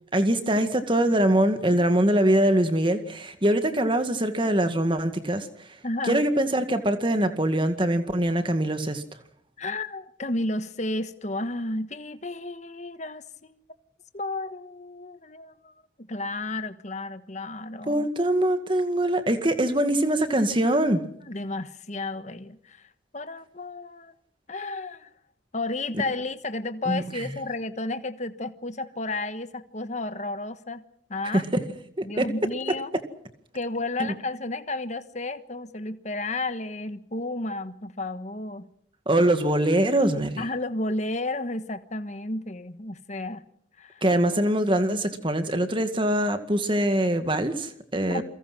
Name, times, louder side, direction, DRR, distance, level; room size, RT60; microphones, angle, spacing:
voice 1, 0.1-5.5 6.1-9.0 17.9-21.0 26.9-27.3 31.3-31.6 32.0-32.3 34.0-34.1 39.1-40.4 44.0-48.2, right 1 dB, 25° right, 2.0 m, -23 dB
voice 2, 5.8-6.2 9.6-13.6 14.1-15.7 16.1-18.1 21.2-22.8 23.1-24.1 24.5-25.1 25.5-30.8 31.1-31.4 32.0-32.9 33.5-38.7 40.4-43.4 43.8-44.0 48.1-48.2, left 2 dB, 40° left, 1.4 m, -32 dB
28.5 x 23.5 x 6.2 m
head